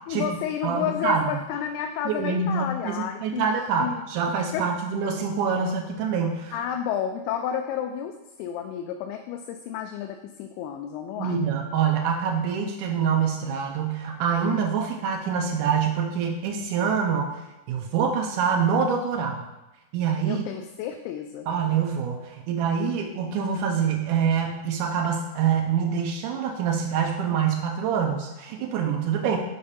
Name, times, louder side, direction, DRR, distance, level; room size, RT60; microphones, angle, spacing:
voice 1, 0.1-3.4 3.8-4.0 4.5-4.7 6.5-11.4 20.2-21.5, left 9 dB, 85° left, 5 dB, 2.5 m, -31 dB
voice 2, 0.6-1.4 2.1-6.6 11.2-17.3 17.7-19.4 19.9-20.5 21.5-29.4, right 6 dB, 85° right, 1 dB, 1.8 m, -25 dB
6.8 x 4.9 x 5.6 m, 1.0 s
omnidirectional pair, 4.5 m